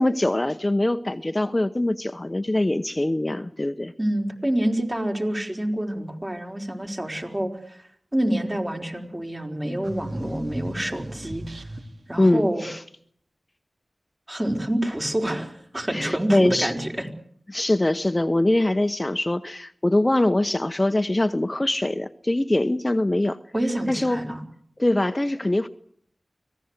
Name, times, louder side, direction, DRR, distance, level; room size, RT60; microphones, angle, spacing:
voice 1, 0.0-3.9 12.2-12.8 15.9-16.7 17.5-23.4 23.9-24.2 24.8-25.7, left 1 dB, 30° left, 10 dB, 0.9 m, -23 dB
voice 2, 4.0-7.8 8.1-11.4 12.1-12.7 14.3-16.9 23.5-24.4, right 1 dB, 25° right, 2 dB, 4.6 m, -27 dB
sound 1, 9.8-12.2, right 1 dB, 75° right, 2.4 m, -37 dB
25.0 x 17.5 x 8.1 m, 0.63 s
cardioid pair, 45°, 0 cm